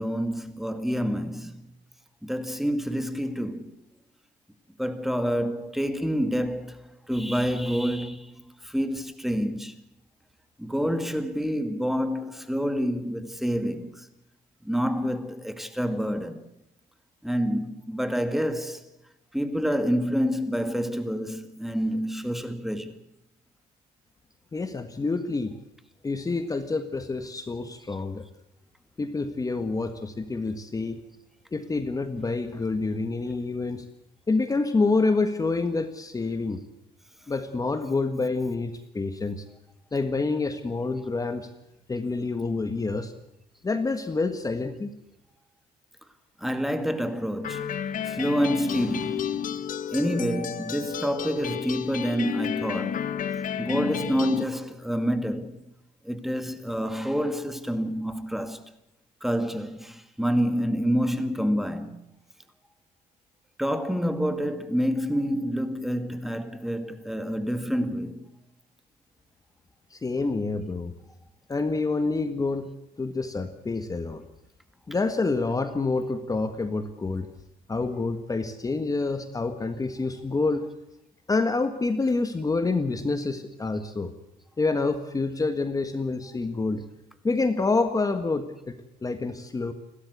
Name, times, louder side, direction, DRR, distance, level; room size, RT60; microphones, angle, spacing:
voice 1, 0.0-1.6 2.2-3.7 4.8-9.8 10.6-14.1 14.6-16.4 17.2-18.8 19.3-22.9 46.4-47.7 48.0-49.5 49.9-53.1 53.6-55.6 56.0-58.6 59.2-62.0 63.6-68.3, equal, ahead, 2.1 m, -28 dB
voice 2, 24.5-25.5 26.0-28.3 29.0-31.0 31.5-33.8 34.3-36.6 37.3-39.4 39.9-41.5 41.9-43.1 43.6-44.9 69.9-70.9 71.5-72.7 73.0-74.2 74.9-77.3 77.7-80.7 81.3-84.1 84.6-86.8 87.2-89.7, left 3 dB, 20° left, 1.6 m, -27 dB
sound 1, 47.4-54.4, left 9 dB, 55° left, 1.6 m, -31 dB
29.5 x 13.0 x 8.1 m
cardioid pair, 110°, 17 cm